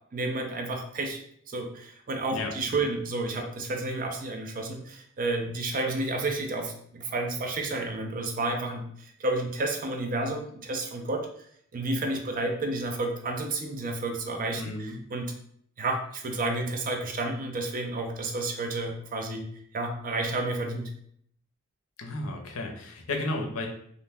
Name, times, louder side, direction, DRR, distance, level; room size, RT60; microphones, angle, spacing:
voice 1, 0.1-1.2 1.5-11.3 11.7-15.3 15.8-19.5 19.7-20.9, right 2 dB, 40° right, 4 dB, 0.4 m, -31 dB
voice 2, 2.3-2.8 14.6-15.0 22.0-23.7, left 2 dB, 80° left, 2 dB, 0.6 m, -33 dB
2.5 x 2.1 x 3.4 m, 0.65 s
head